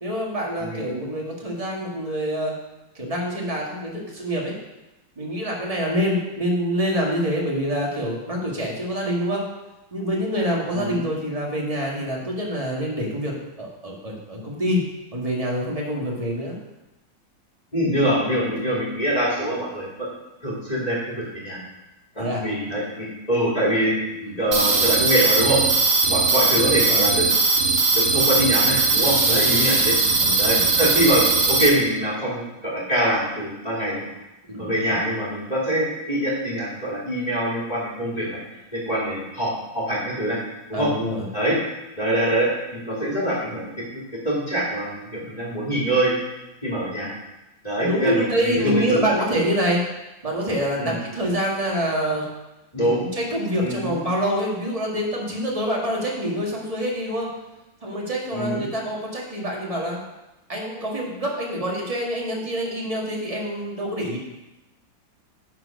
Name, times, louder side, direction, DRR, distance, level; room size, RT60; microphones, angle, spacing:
voice 1, 0.0-2.6 2.9-4.6 5.1-9.5 9.9-13.3 13.6-14.8 15.1-16.6 22.2-22.4 24.2-24.3 26.4-27.1 29.2-29.6 30.2-30.6 34.5-35.0 40.7-41.3 47.8-49.8 50.2-52.3 52.8-57.3 57.8-60.0 60.5-64.2, equal, 20° right, -3 dB, 1.6 m, -26 dB
voice 2, 17.7-20.1 20.4-21.6 22.2-24.0 24.4-25.6 26.1-27.3 27.9-29.9 30.4-34.1 34.6-38.4 38.7-40.4 40.7-40.9 41.3-41.6 42.0-46.1 46.6-47.1 47.6-49.0 50.8-51.0 52.7-53.0 53.6-53.9 58.3-58.6, right 1 dB, 20° left, -6 dB, 2.5 m, -24 dB
sound 1, 24.5-31.7, right 3 dB, 40° right, 1.0 m, -19 dB
10.5 x 4.5 x 5.2 m, 1.0 s
omnidirectional pair, 2.2 m